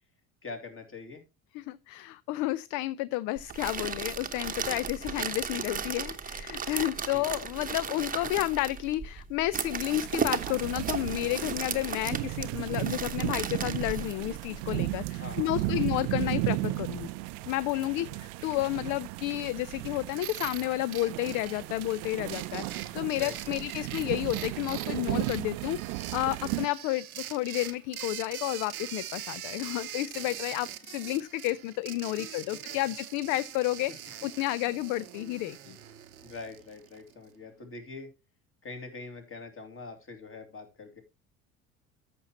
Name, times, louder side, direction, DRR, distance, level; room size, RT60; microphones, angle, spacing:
voice 1, 0.4-1.2 7.1-7.3 15.2-15.9 23.1-23.9 36.2-38.1 38.6-41.0, left 3 dB, 30° left, 2.5 m, -44 dB
voice 2, 1.5-17.1 17.5-35.8, left 16 dB, 50° left, 0.4 m, -31 dB
sound 1, 3.4-14.7, right 6 dB, 20° right, 1.0 m, -35 dB
sound 2, 9.9-26.7, right 18 dB, 60° right, 0.6 m, -35 dB
sound 3, 20.2-37.1, right 11 dB, 85° right, 0.8 m, -43 dB
14.0 x 5.9 x 2.9 m
hypercardioid pair, 65°, 42 cm